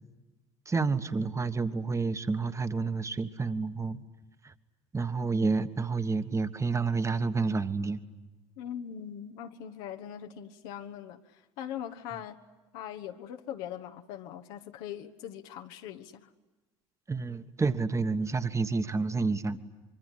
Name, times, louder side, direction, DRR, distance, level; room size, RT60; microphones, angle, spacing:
voice 1, 0.7-4.0 4.4-4.5 4.9-8.0 17.1-19.6, right 4 dB, 20° right, 1.5 m, -29 dB
voice 2, 8.6-12.4 12.7-16.3, left 10 dB, 60° left, 1.3 m, -41 dB
25.0 x 24.0 x 10.0 m
figure-of-eight pair, 65°, 16 cm